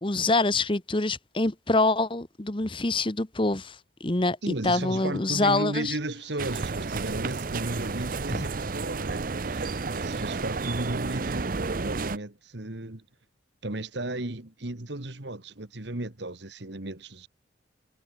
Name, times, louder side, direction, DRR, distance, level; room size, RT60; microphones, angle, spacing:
voice 1, 0.0-4.4 4.6-5.9 8.3-8.4, left 2 dB, 25° left, 1.1 m, -25 dB
voice 2, 4.4-13.0 13.6-17.3, right 2 dB, 60° right, 1.8 m, -35 dB
sound 1, 6.4-12.2, right 4 dB, 45° right, 0.6 m, -31 dB
head